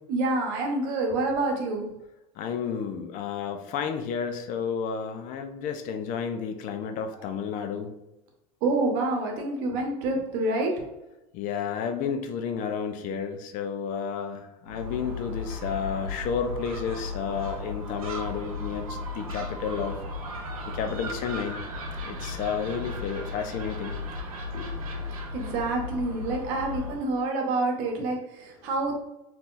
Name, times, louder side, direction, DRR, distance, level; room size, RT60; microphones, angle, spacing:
voice 1, 0.1-1.9 8.6-10.7 25.3-28.9, right 2 dB, 60° right, 2 dB, 0.9 m, -27 dB
voice 2, 2.4-8.0 11.3-19.9 20.7-21.6 22.0-24.0 24.5-24.8, left 6 dB, 50° left, 7 dB, 0.5 m, -31 dB
Gull seagull, 14.6-27.1, left 2 dB, 85° right, 0.7 m, -35 dB
3.5 x 2.9 x 2.5 m, 0.95 s
hypercardioid pair, 95°, 18 cm